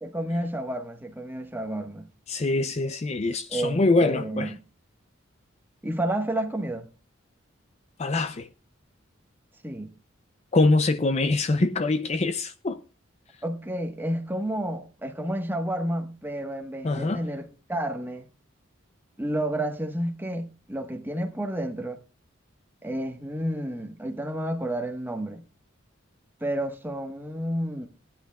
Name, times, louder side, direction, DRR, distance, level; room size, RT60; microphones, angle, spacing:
voice 1, 0.0-2.1 3.5-4.6 5.8-6.9 9.6-9.9 13.4-18.3 19.2-22.0 22.8-25.4 26.4-27.9, right 1 dB, 10° right, 1.2 m, -30 dB
voice 2, 2.3-4.5 8.0-8.5 10.5-12.8 16.8-17.2, left 2 dB, 30° left, 0.5 m, -24 dB
19.0 x 10.5 x 2.3 m
head